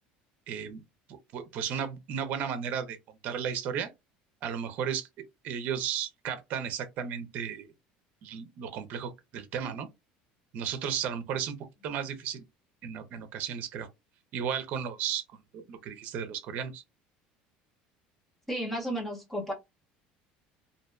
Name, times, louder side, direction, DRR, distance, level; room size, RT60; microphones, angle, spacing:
voice 1, 0.5-0.8 1.1-3.9 4.4-5.1 5.4-7.7 8.2-9.9 10.5-11.6 11.8-12.4 12.8-13.9 14.3-15.2 15.5-16.8, right 8 dB, 50° right, 0.7 m, -34 dB
voice 2, 18.5-19.5, equal, 5° left, 1.0 m, -33 dB
2.7 x 2.6 x 2.3 m
cardioid pair, 155°, 4 cm